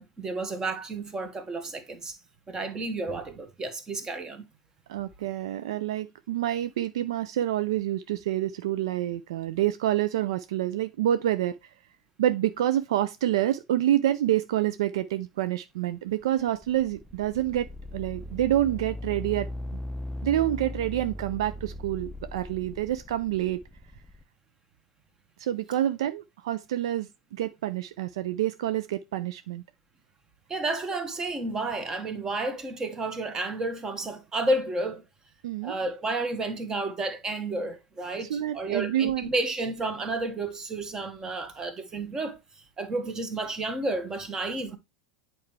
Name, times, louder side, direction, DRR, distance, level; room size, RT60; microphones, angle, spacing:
voice 1, 0.0-2.2 2.5-4.4 30.5-35.0 35.6-42.4 42.8-44.8, right 2 dB, 20° right, 1.3 m, -31 dB
voice 2, 4.9-11.7 12.2-17.7 17.9-19.8 20.2-23.6 25.4-29.6 35.4-35.8 38.2-39.3, right 12 dB, 65° right, 0.4 m, -27 dB
sound 1, 16.2-24.2, left 1 dB, 5° left, 0.4 m, -39 dB
8.5 x 4.5 x 3.2 m
figure-of-eight pair, 85°, 3 cm